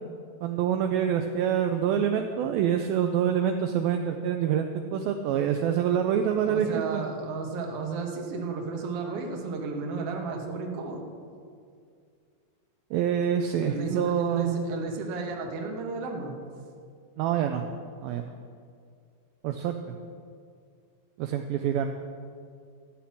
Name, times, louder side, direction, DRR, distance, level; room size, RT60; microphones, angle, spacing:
voice 1, 0.4-7.0 12.9-14.6 17.2-17.6 18.0-18.3 19.4-19.7 21.2-22.0, right 9 dB, 90° right, 5 dB, 2.1 m, -26 dB
voice 2, 6.4-11.1 13.6-16.3, right 4 dB, 70° right, 1 dB, 1.4 m, -33 dB
13.0 x 5.9 x 8.5 m, 2.2 s
omnidirectional pair, 4.8 m